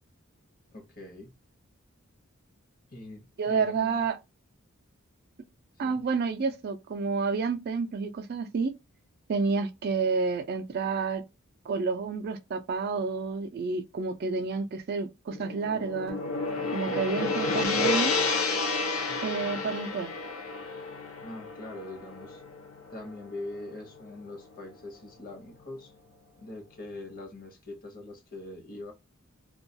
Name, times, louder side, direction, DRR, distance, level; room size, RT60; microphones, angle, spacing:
voice 1, 0.7-1.3 2.9-4.0 5.8-6.0 19.1-19.6 21.2-22.4 22.9-25.9 26.4-28.9, left 2 dB, 45° left, 0.8 m, -43 dB
voice 2, 3.4-4.2 5.8-8.7 9.3-11.2 11.7-16.2 16.7-18.2 19.2-20.1, right 4 dB, 50° right, 0.3 m, -29 dB
Gong, 15.3-23.6, left 3 dB, 85° left, 0.6 m, -30 dB
2.3 x 2.2 x 2.6 m
head